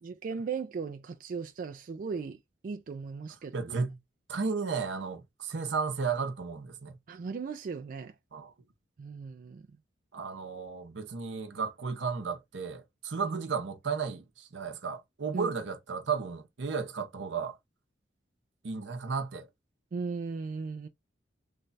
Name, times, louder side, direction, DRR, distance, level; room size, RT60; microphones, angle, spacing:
voice 1, 0.0-3.8 7.1-8.1 9.0-9.6 13.2-13.4 15.3-15.5 19.9-20.9, right 5 dB, 50° right, 0.3 m, -37 dB
voice 2, 3.5-4.0 4.3-7.0 8.3-8.5 10.1-17.6 18.6-19.5, right 5 dB, 75° right, 0.7 m, -34 dB
3.2 x 2.3 x 3.9 m
head